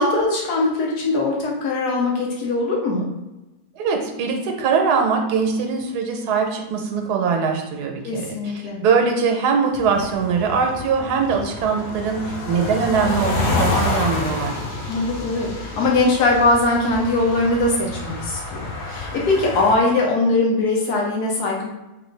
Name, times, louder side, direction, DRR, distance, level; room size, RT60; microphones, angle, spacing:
voice 1, 0.0-3.1 8.0-8.8 14.9-21.7, left 2 dB, 80° left, -2 dB, 1.4 m, -21 dB
voice 2, 3.8-14.6, right 5 dB, 85° right, 3 dB, 1.2 m, -22 dB
sound 1, 9.7-19.8, left 3 dB, 60° left, 0.5 m, -28 dB
3.3 x 2.5 x 3.2 m, 1.0 s
omnidirectional pair, 1.7 m